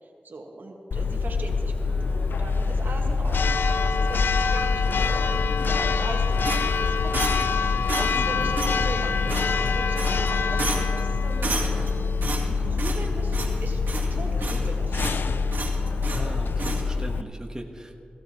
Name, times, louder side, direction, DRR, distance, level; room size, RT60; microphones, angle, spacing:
voice 1, 0.0-7.3 7.6-11.8 12.5-13.8 14.1-15.2, right 2 dB, 70° right, 1 dB, 1.6 m, -39 dB
Church bell, 0.9-17.2, left 4 dB, 85° left, 0.4 m, -25 dB
sound 1, 1.7-7.1, left 2 dB, 25° left, 3.8 m, -36 dB
sound 2, 6.4-7.6 7.9-8.2 8.6-8.8 9.3-9.7 10.0-10.3 10.6-11.0 11.4-11.9 12.2-13.1 13.3-13.6 13.9-14.7 15.0-15.2 15.5-16.3 16.6-16.8, right 3 dB, 90° right, 2.2 m, -32 dB
voice 2, 8.1-8.5 16.0-18.0, right 1 dB, 20° right, 1 dB, 1.2 m, -37 dB
17.0 x 15.0 x 3.0 m, 2.4 s
wide cardioid pair, 65°, 3 cm